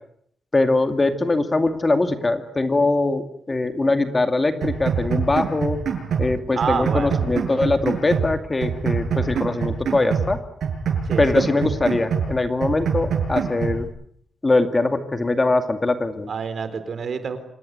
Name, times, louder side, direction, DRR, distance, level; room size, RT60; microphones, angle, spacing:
voice 1, 0.5-5.8 6.2-10.4 11.2-13.9 14.4-16.3, left 2 dB, 25° left, 8 dB, 2.3 m, -22 dB
sound 1, 4.6-6.3 6.6-8.3 8.6-10.3 10.6-12.3 12.6-13.9, right 6 dB, 75° right, 6.7 m, -25 dB
voice 2, 6.5-7.2 11.0-11.2 16.3-17.4, right 6 dB, 60° right, 11 dB, 4.1 m, -27 dB
27.0 x 18.0 x 9.5 m, 0.68 s
cardioid pair, 110°, 0 cm